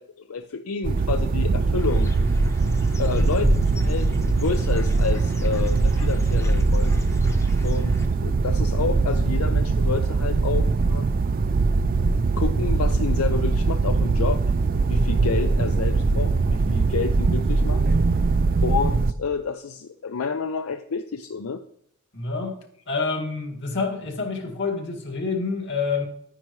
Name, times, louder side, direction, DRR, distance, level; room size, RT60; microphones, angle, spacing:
voice 1, 0.0-2.1 3.0-6.9 7.6-11.1 12.4-14.4 14.9-17.8 18.6-21.6, left 5 dB, 85° left, 8 dB, 0.5 m, -29 dB
sound 1, 0.8-19.1, right 3 dB, 45° right, 0.4 m, -22 dB
Dog / Bird, 1.8-8.1, equal, 15° left, 0.8 m, -28 dB
sound 2, 13.6-17.0 17.2-17.3, right 2 dB, 75° right, 1.2 m, -43 dB
voice 2, 22.1-22.6 22.9-26.0, left 4 dB, 55° left, 2 dB, 2.1 m, -27 dB
10.5 x 9.9 x 3.1 m, 0.68 s
head